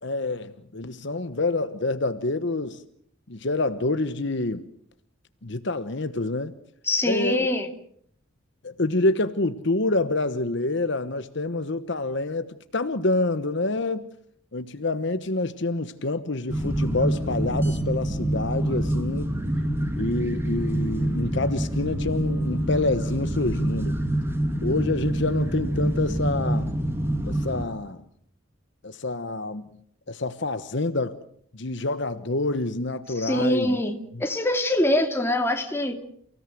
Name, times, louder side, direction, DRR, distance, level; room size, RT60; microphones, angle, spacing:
voice 1, 0.0-2.8 3.3-4.6 5.4-6.5 7.0-7.5 8.6-14.1 14.5-19.3 20.0-24.0 24.6-26.7 27.2-28.0 28.8-29.7 30.1-31.2 31.5-33.8 34.1-34.2, left 2 dB, 60° left, 1.1 m, -27 dB
voice 2, 6.9-7.7 33.1-35.9, left 1 dB, 10° left, 2.6 m, -24 dB
sound 1, 16.5-27.7, right 1 dB, 10° right, 2.3 m, -26 dB
30.0 x 17.0 x 7.8 m
head